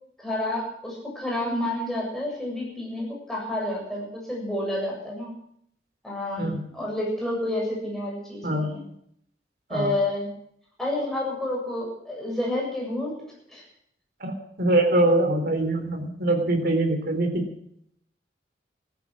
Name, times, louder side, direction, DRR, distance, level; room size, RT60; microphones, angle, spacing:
voice 1, 0.2-5.3 6.0-8.8 9.7-10.3 10.8-13.2 13.5-13.6, left 1 dB, ahead, -3 dB, 7.4 m, -29 dB
voice 2, 14.2-17.5, right 1 dB, 60° right, 4 dB, 3.7 m, -23 dB
15.5 x 13.5 x 6.3 m, 0.70 s
head